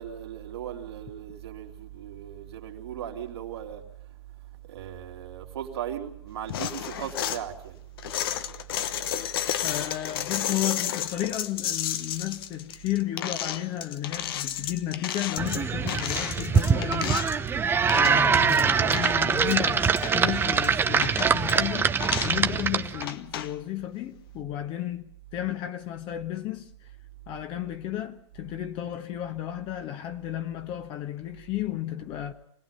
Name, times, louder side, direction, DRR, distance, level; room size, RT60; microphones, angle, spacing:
voice 1, 0.0-7.8, right 10 dB, 65° right, 2.7 m, -38 dB
sound 1, 6.5-7.4 8.0-17.5 17.8-18.6 18.9-20.2 20.6-20.7 21.0-21.5 22.0-22.4 23.0-23.5, left 10 dB, 55° left, 1.1 m, -32 dB
voice 2, 9.6-17.3 17.9-21.9 22.2-26.7 27.3-32.3, left 13 dB, 35° left, 1.3 m, -33 dB
sound 2, 15.4-23.1, right 6 dB, 15° right, 0.9 m, -24 dB
25.5 x 19.0 x 5.6 m
figure-of-eight pair, 105°, 14 cm